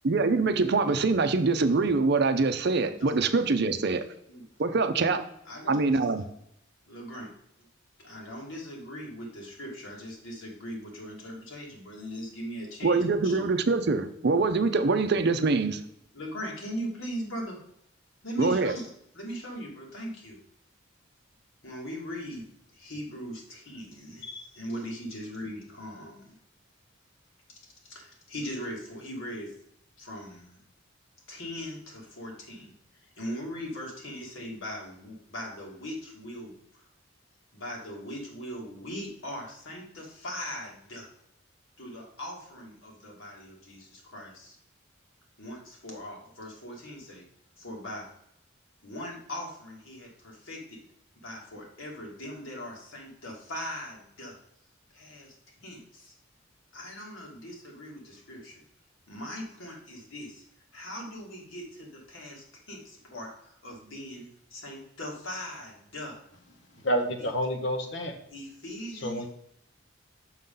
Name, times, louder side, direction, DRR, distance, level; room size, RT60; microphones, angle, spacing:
voice 1, 0.0-4.0 4.6-5.2 5.7-6.2 12.8-15.8 18.4-18.7, right 3 dB, 55° right, 9 dB, 0.6 m, -24 dB
voice 2, 5.5-6.1 6.8-7.3 8.0-13.4 16.1-17.6 18.2-20.4 21.6-22.5 22.7-26.3 27.8-29.5 30.0-30.6 31.3-32.7 33.0-36.8 37.5-41.1 41.8-44.6 45.4-47.3 47.6-48.1 48.8-50.8 51.2-54.4 54.9-55.3 55.6-56.1 56.7-58.6 59.1-60.4 60.7-66.2 68.3-69.3, equal, 80° left, -2 dB, 2.2 m, -40 dB
voice 3, 66.8-68.1 69.0-69.3, equal, 60° left, 3 dB, 1.0 m, -28 dB
6.3 x 5.5 x 3.8 m, 0.75 s
head